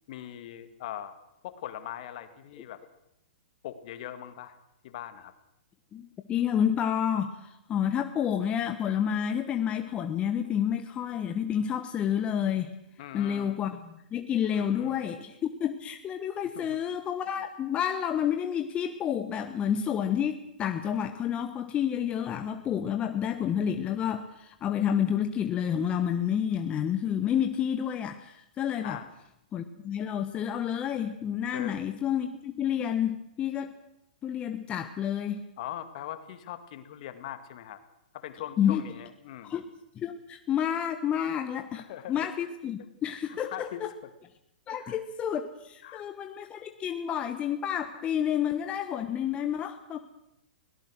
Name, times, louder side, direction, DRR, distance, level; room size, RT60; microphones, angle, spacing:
voice 1, 0.1-1.1 1.4-2.8 3.6-4.6 4.8-5.3 13.0-13.6 14.5-15.1 16.5-16.8 17.4-17.5 28.8-29.1 31.5-31.8 35.6-37.8 38.1-39.6 41.8-42.2 43.3-43.8 44.7-45.0 45.8-46.1, left 11 dB, 50° left, 10 dB, 2.1 m, -41 dB
voice 2, 5.9-12.7 13.1-29.0 29.5-33.8 34.2-35.4 38.6-38.8 39.4-39.6 40.0-41.8 42.1-43.9 44.7-50.0, left 9 dB, 25° left, 7 dB, 1.2 m, -29 dB
24.5 x 18.0 x 6.4 m, 0.82 s
figure-of-eight pair, 115°, 5 cm